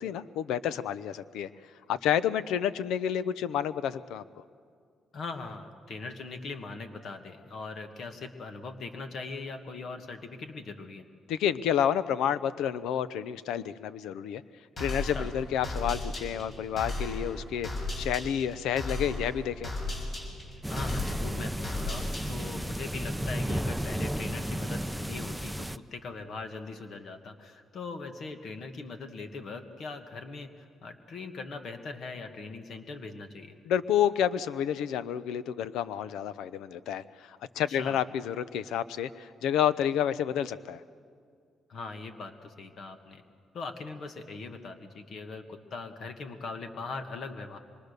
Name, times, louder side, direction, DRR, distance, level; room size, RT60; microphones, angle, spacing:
voice 1, 0.0-1.5 1.9-4.2 11.3-14.4 14.8-17.7 18.0-19.7 33.7-40.8, left 9 dB, 85° left, 16 dB, 0.7 m, -29 dB
voice 2, 5.1-11.0 15.0-15.3 20.7-33.5 37.7-38.0 41.7-43.2 43.5-47.6, left 3 dB, 60° left, 7 dB, 1.7 m, -40 dB
sound 1, 14.8-22.6, left 2 dB, 45° left, 6.4 m, -36 dB
sound 2, 20.6-25.8, equal, 5° right, 0.6 m, -33 dB
25.0 x 22.5 x 6.7 m, 2.1 s
cardioid pair, 90°, 0 cm